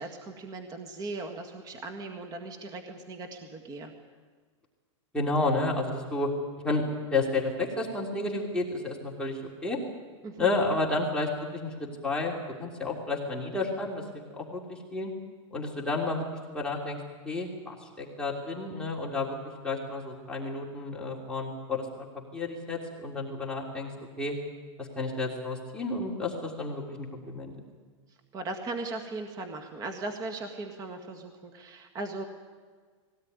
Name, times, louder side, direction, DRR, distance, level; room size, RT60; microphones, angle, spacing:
voice 1, 0.0-3.9 10.2-10.5 28.3-32.2, right 3 dB, 25° right, 5 dB, 1.8 m, -38 dB
voice 2, 5.1-6.3 6.6-6.8 7.1-9.8 10.4-11.7 12.0-14.0 14.3-15.1 15.5-17.0 17.2-19.3 19.6-21.9 22.3-23.9 24.2-24.3 24.8-27.5, left 2 dB, 5° left, -3 dB, 3.3 m, -31 dB
21.0 x 17.5 x 9.6 m, 1.5 s
supercardioid pair, 145°, 16 cm